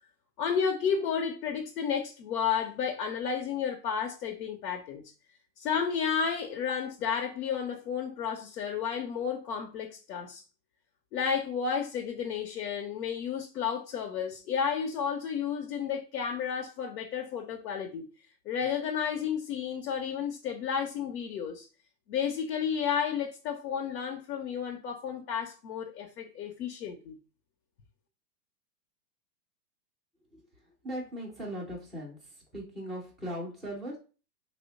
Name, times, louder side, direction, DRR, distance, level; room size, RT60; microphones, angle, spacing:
voice 1, 0.4-5.0 5.6-10.4 11.1-18.1 18.5-21.7 22.1-27.2, left 7 dB, 65° left, 0.8 m, -32 dB
voice 2, 30.8-32.2 32.5-34.0, equal, ahead, 0.4 m, -38 dB
3.0 x 2.1 x 3.9 m
hypercardioid pair, 125°, 50 cm